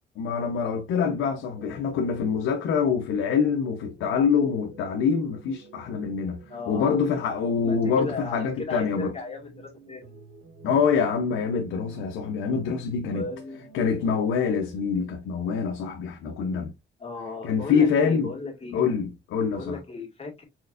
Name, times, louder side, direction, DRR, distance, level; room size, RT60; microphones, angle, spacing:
voice 1, 0.2-6.4 6.7-9.1 10.6-13.3 13.7-16.7 17.4-18.3 18.7-19.8, left 6 dB, 90° left, 0.8 m, -25 dB
sound 1, 1.0-15.1, right 4 dB, 75° right, 2.6 m, -50 dB
voice 2, 6.5-7.0 7.6-10.2 13.1-13.7 17.0-18.9 19.5-20.4, left 3 dB, 30° left, 2.2 m, -36 dB
4.5 x 4.4 x 2.5 m
cardioid pair, 90°, 20 cm